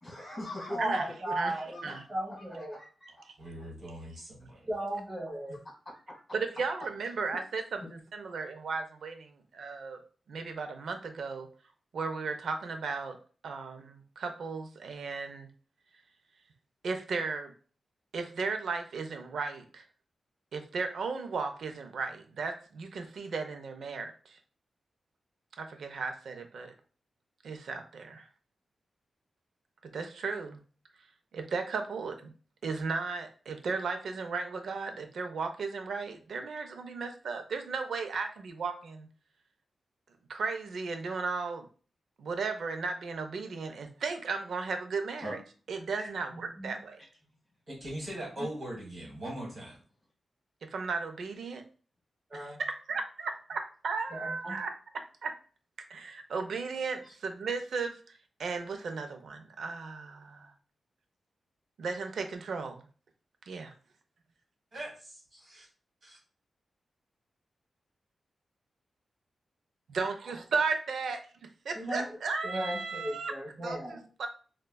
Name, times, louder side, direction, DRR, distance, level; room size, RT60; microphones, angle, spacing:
voice 1, 0.0-2.0 2.3-3.1 5.8-6.2 7.8-7.9 45.2-45.3 46.0-46.1 48.4-48.5 57.0-57.1, left 1 dB, 15° left, -3 dB, 1.5 m, -42 dB
voice 2, 0.7-1.8 2.1-2.8 4.7-5.6 46.3-46.8 52.3-52.6 54.1-54.5 71.8-72.1 72.4-74.0, right 1 dB, 30° right, -6 dB, 0.9 m, -35 dB
voice 3, 3.4-4.7 5.5-5.6 47.7-49.8 64.7-65.7 66.0-66.2, right 1 dB, 45° right, -3 dB, 1.4 m, -41 dB
voice 4, 6.3-10.0 10.3-11.5 11.9-13.2 13.4-15.5 16.8-17.5 18.1-19.8 20.5-24.4 25.6-26.7 27.4-28.3 29.8-30.6 31.3-32.3 32.6-39.1 40.3-41.7 42.2-45.4 45.7-47.0 50.6-51.6 52.3-52.5 52.9-54.7 55.2-55.3 55.9-58.0 58.4-60.5 61.8-62.8 63.5-63.7 69.9-71.2 71.7-73.3 73.6-74.3, right 4 dB, 75° right, 6 dB, 0.4 m, -35 dB
4.3 x 2.1 x 2.2 m, 0.39 s
wide cardioid pair, 145°, 0 cm